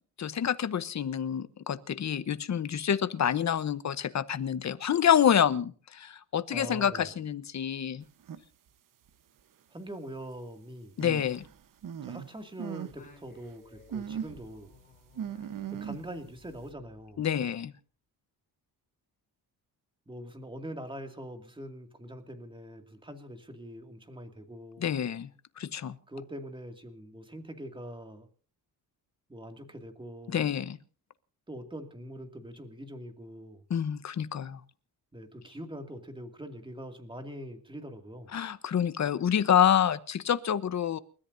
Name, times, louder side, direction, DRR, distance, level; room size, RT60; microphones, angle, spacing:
voice 1, 0.2-8.0 11.0-11.5 17.2-17.7 24.8-25.3 25.6-25.9 30.3-30.8 33.7-34.6 38.3-41.0, left 9 dB, 45° left, 14 dB, 1.0 m, -27 dB
voice 2, 6.5-7.1 9.7-11.0 12.0-14.7 15.4-17.2 20.1-24.9 26.1-28.3 29.3-30.4 31.5-33.6 35.1-38.4, equal, 10° right, 5 dB, 2.3 m, -43 dB
sound 1, 8.2-8.4 9.1-9.2 11.0-12.3 12.6-13.0 13.3-13.4 13.9-14.5 15.2-16.2, right 8 dB, 55° right, 1.1 m, -38 dB
Singing, 12.9-17.7, left 3 dB, 20° left, 5.2 m, -58 dB
29.5 x 14.0 x 2.7 m, 0.41 s
wide cardioid pair, 165°, 39 cm